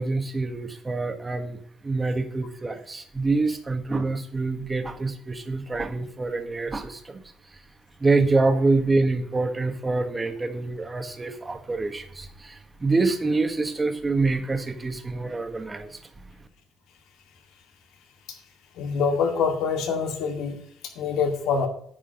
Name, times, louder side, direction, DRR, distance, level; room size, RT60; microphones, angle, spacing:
voice 1, 0.0-7.2 8.0-16.3, right 3 dB, 25° right, 7 dB, 1.6 m, -26 dB
voice 2, 18.8-20.6 21.0-21.7, left 5 dB, 80° left, 3 dB, 2.1 m, -25 dB
10.0 x 4.9 x 7.8 m, 0.63 s
cardioid pair, 85°, 0 cm